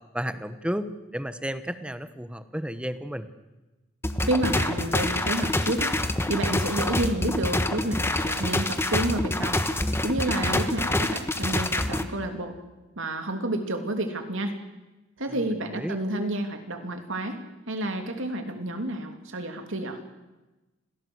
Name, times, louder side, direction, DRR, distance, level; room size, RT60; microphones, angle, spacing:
voice 1, 0.1-3.3 10.5-10.6 15.7-16.0, equal, 5° right, 12 dB, 1.1 m, -32 dB
sound 1, 4.0-12.0, left 1 dB, 10° left, 1.3 m, -26 dB
voice 2, 4.3-6.0 6.3-9.6 10.0-12.5 13.0-14.6 15.2-17.4 17.7-20.0, right 1 dB, 65° right, 6 dB, 3.0 m, -30 dB
26.5 x 17.5 x 8.1 m, 1.1 s
head